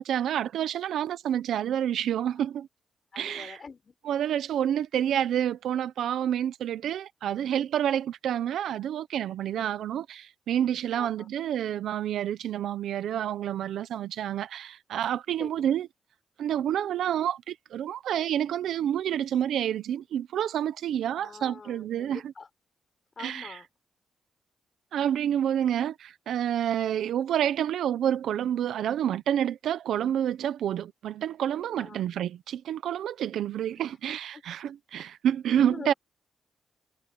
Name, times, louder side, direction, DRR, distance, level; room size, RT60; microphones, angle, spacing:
voice 1, 0.0-2.7 3.2-3.6 4.0-15.9 16.4-22.3 23.2-23.6 24.9-35.9, right 10 dB, 85° right, 1.0 m, -28 dB
voice 2, 3.1-3.9 9.5-9.7 10.9-11.3 15.4-15.5 21.1-22.5 23.2-23.7 31.8-32.1 33.8-33.9 34.3-34.6 35.0-35.1 35.6-36.0, left 5 dB, 40° left, 6.2 m, -44 dB
cardioid pair, 90°, 0 cm